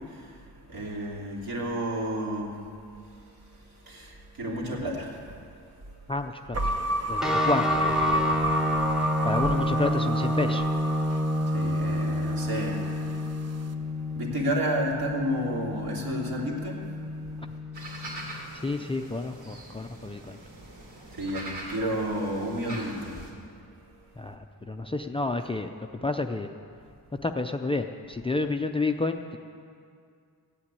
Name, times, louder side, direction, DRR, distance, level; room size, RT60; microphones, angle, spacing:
voice 1, 0.0-6.1 7.2-7.3 11.0-17.6 18.2-18.7 20.8-24.3, right 1 dB, 65° right, -2 dB, 3.1 m, -33 dB
voice 2, 6.1-6.8 7.1-8.3 9.2-10.7 18.6-20.4 24.2-25.7 26.0-26.5 27.2-29.4, left 2 dB, 15° left, 6 dB, 0.4 m, -30 dB
sound 1, 6.5-12.9, equal, 40° right, 0.9 m, -30 dB
sound 2, 7.2-18.4, left 1 dB, ahead, 0.9 m, -29 dB
sound 3, 17.7-23.3, right 1 dB, 80° right, 3.3 m, -42 dB
15.5 x 8.9 x 9.6 m, 2.3 s
wide cardioid pair, 170°, 38 cm